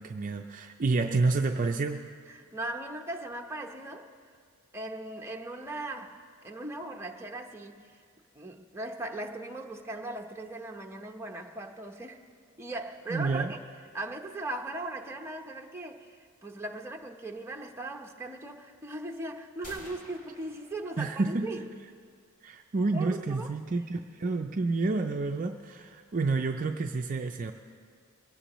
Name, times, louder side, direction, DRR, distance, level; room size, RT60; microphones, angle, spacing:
voice 1, 0.0-2.1 13.1-13.5 21.0-21.5 22.4-27.5, right 3 dB, 40° right, 4 dB, 0.4 m, -29 dB
voice 2, 2.3-4.3 4.7-8.0 8.3-12.2 12.6-13.6 13.9-21.6 22.9-23.5, right 2 dB, 10° right, 1 dB, 0.8 m, -38 dB
sound 1, 19.6-21.5, left 1 dB, 40° left, 2.0 m, -50 dB
22.5 x 16.5 x 3.1 m, 2.1 s
head